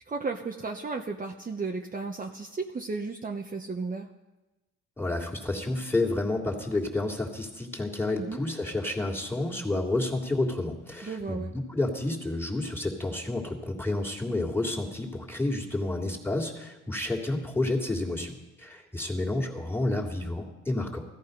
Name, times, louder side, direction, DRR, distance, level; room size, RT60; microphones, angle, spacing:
voice 1, 0.1-4.1 8.2-8.4 11.0-11.5, right 4 dB, 30° right, 2 dB, 1.1 m, -34 dB
voice 2, 5.0-21.0, left 2 dB, 10° left, 0 dB, 2.9 m, -30 dB
16.5 x 14.0 x 5.4 m, 1.1 s
cardioid pair, 90°, 30 cm